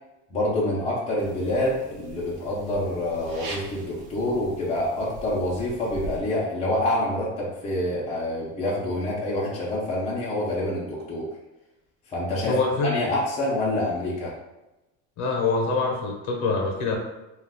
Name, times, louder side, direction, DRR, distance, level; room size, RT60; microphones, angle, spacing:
voice 1, 0.3-11.3 12.1-14.3, left 1 dB, 20° left, -6 dB, 0.5 m, -27 dB
sound 1, 1.2-6.2, right 3 dB, 85° right, 0.7 m, -41 dB
voice 2, 12.4-12.9 15.2-17.0, left 3 dB, 55° left, 0 dB, 0.8 m, -25 dB
2.3 x 2.3 x 3.5 m, 0.99 s
cardioid pair, 165°, 33 cm